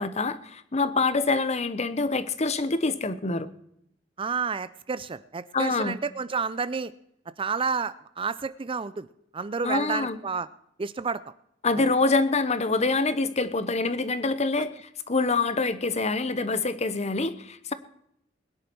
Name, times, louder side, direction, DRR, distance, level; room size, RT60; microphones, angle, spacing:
voice 1, 0.0-3.5 5.5-6.0 9.6-10.2 11.6-17.7, left 3 dB, 35° left, 13 dB, 0.9 m, -26 dB
voice 2, 4.2-6.9 7.4-9.1 9.3-10.5 10.8-11.2 11.8-11.9, right 5 dB, 30° right, 15 dB, 0.5 m, -30 dB
21.0 x 10.5 x 4.6 m, 0.75 s
head